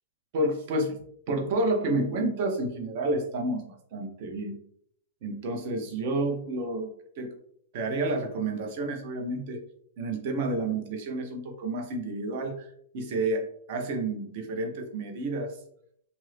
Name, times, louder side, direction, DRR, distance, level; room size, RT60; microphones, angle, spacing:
voice 1, 0.3-4.6 5.2-7.3 7.7-9.6 10.0-15.6, right 2 dB, 45° right, 3 dB, 0.7 m, -30 dB
2.8 x 2.5 x 3.3 m, 0.68 s
hypercardioid pair, 160°, 0 cm